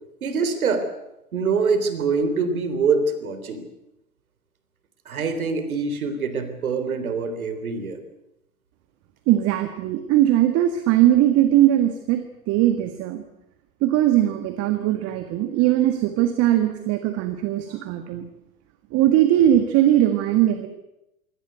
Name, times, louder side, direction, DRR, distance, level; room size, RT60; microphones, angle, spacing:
voice 1, 0.2-0.9 1.3-3.7 5.1-8.0, right 4 dB, 70° right, 10 dB, 3.7 m, -24 dB
voice 2, 9.3-13.2 13.8-18.2 18.9-20.7, right 12 dB, 35° right, 8 dB, 1.7 m, -20 dB
23.5 x 17.5 x 8.1 m, 0.89 s
figure-of-eight pair, 100°, 44 cm